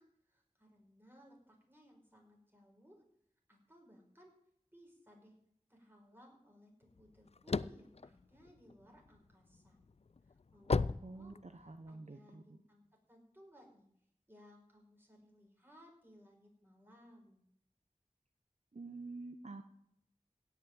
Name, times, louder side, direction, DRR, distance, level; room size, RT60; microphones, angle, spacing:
voice 1, 0.0-3.0 3.5-4.3 4.7-5.3 5.7-9.8 10.3-13.9 14.3-17.4, equal, 15° right, 0 dB, 5.4 m, -62 dB
sound 1, 7.0-9.2 9.7-11.9, left 4 dB, 55° left, 0.4 m, -35 dB
voice 2, 11.0-12.6 18.7-19.7, right 3 dB, 65° right, 6 dB, 1.0 m, -48 dB
17.0 x 5.9 x 8.9 m, 0.71 s
wide cardioid pair, 45°, 13 cm